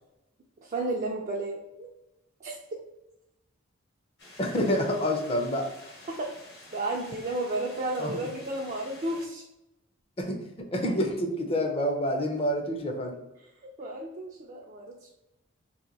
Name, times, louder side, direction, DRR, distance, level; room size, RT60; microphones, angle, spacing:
voice 1, 0.6-1.9 2.4-2.6 6.7-9.4 13.8-15.1, right 2 dB, 40° right, -1 dB, 0.4 m, -32 dB
sound 1, 4.2-9.3, left 1 dB, 55° left, 0.9 m, -49 dB
voice 2, 4.4-5.7 8.0-8.2 10.2-13.2, equal, 30° left, 3 dB, 0.5 m, -28 dB
2.8 x 2.6 x 3.9 m, 0.90 s
head